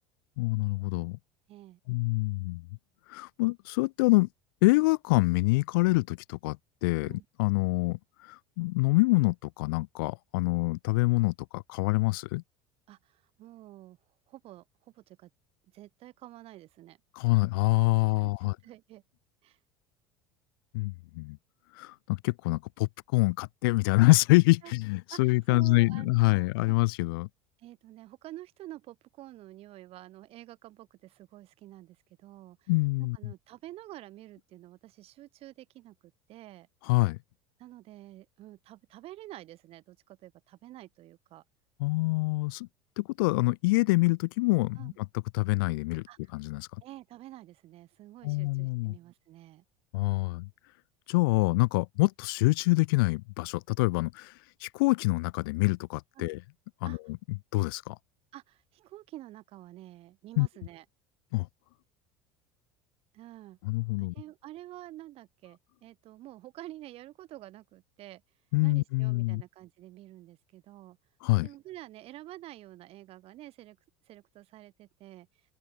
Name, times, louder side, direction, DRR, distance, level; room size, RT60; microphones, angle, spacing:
voice 1, 0.4-1.2 1.9-2.6 3.1-4.3 4.6-6.6 6.8-12.4 17.1-18.6 20.7-21.4 21.8-27.3 32.7-33.3 36.8-37.2 41.8-42.7 43.0-45.1 45.3-46.0 46.3-46.7 48.2-48.9 49.9-50.5 51.1-54.3 54.6-56.4 56.8-57.0 57.5-57.9 60.4-60.5 61.3-61.5 63.6-64.1 68.5-69.4 71.2-71.5, left 24 dB, 60° left, 1.3 m, -26 dB
voice 2, 1.5-1.8 7.1-7.2 12.9-14.0 14.3-15.3 15.7-17.0 18.0-19.0 19.4-19.6 24.6-24.7 25.1-26.8 27.6-32.7 33.1-36.7 37.6-41.4 44.8-45.0 46.1-46.3 46.8-49.6 56.2-56.3 56.8-57.0 58.3-60.8 63.1-63.6 64.0-68.2 68.6-71.0 71.4-73.8 74.1-75.3, right 15 dB, 45° right, 6.5 m, -49 dB
open air
figure-of-eight pair, 70°, 14 cm